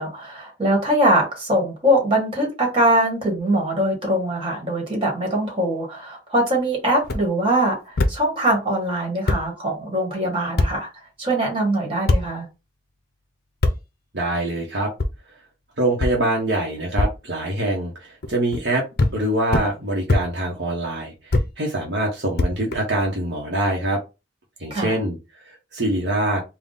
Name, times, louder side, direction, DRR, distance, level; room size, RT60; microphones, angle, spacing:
voice 1, 0.0-10.9 11.2-12.5 24.7-24.9, right 1 dB, 25° right, 0 dB, 1.7 m, -22 dB
sound 1, 7.0-7.2 8.0-8.1 8.9-9.0 9.3-9.4 10.6-10.7 12.1-12.2 13.6-13.8 15.0-15.1 16.0-16.1 17.0-17.1 18.2-18.6 19.0-19.1 19.5-19.7 20.1-20.2 21.3-21.5 22.4-23.1, left 2 dB, 50° left, 0.6 m, -20 dB
voice 2, 14.1-14.9 15.8-18.8 19.1-24.0 24.6-26.4, right 1 dB, 60° right, -2 dB, 1.0 m, -24 dB
3.6 x 2.3 x 4.0 m, 0.26 s
head